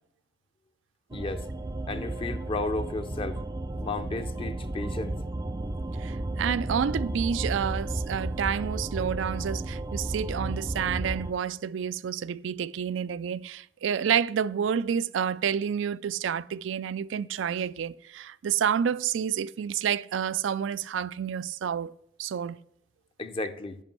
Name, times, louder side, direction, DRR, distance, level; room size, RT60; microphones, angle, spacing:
voice 1, 1.1-1.4 1.9-3.4 3.8-5.2 23.2-23.8, left 2 dB, 30° left, 0.6 m, -33 dB
sound 1, 1.1-11.3, right 1 dB, 20° right, 0.5 m, -33 dB
voice 2, 6.4-21.9 22.2-22.6, right 8 dB, 85° right, 0.4 m, -29 dB
10.0 x 5.3 x 5.5 m
head